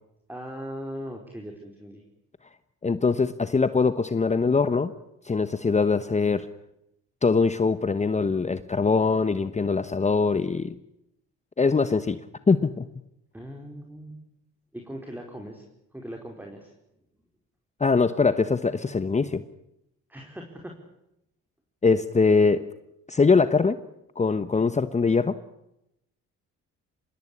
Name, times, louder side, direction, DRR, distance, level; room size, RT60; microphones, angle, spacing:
voice 1, 0.3-2.0 13.3-14.2 14.7-15.6 15.9-16.7 20.1-20.7, equal, 5° right, 2 dB, 4.8 m, -39 dB
voice 2, 2.8-4.9 5.2-6.5 7.2-10.8 11.6-12.2 12.5-12.9 17.8-19.4 21.8-22.7 23.1-23.8 24.2-25.4, left 4 dB, 25° left, 12 dB, 1.1 m, -22 dB
25.5 x 20.5 x 10.0 m, 0.84 s
cardioid pair, 90°, 30 cm